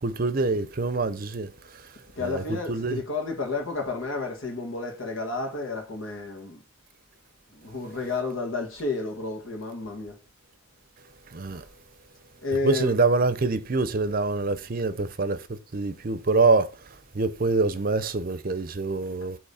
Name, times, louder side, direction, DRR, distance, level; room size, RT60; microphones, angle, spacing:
voice 1, 0.0-1.5 2.2-3.0 11.3-11.6 12.6-16.7 17.1-19.4, right 3 dB, 45° right, 0.6 m, -25 dB
voice 2, 2.2-6.6 7.5-10.2 11.5-11.7 12.4-13.0, left 3 dB, 85° left, 1.5 m, -31 dB
8.3 x 3.1 x 4.1 m
head